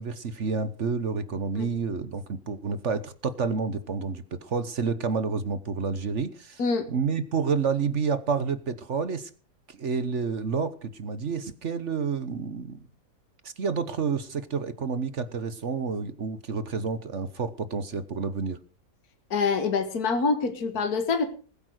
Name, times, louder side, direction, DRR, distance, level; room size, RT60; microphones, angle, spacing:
voice 1, 0.0-6.6 6.9-9.3 9.7-12.8 13.4-18.6, right 5 dB, 50° right, 13 dB, 1.3 m, -29 dB
voice 2, 19.3-21.3, left 4 dB, 65° left, 8 dB, 2.1 m, -25 dB
20.5 x 8.7 x 6.3 m, 0.39 s
omnidirectional pair, 1.8 m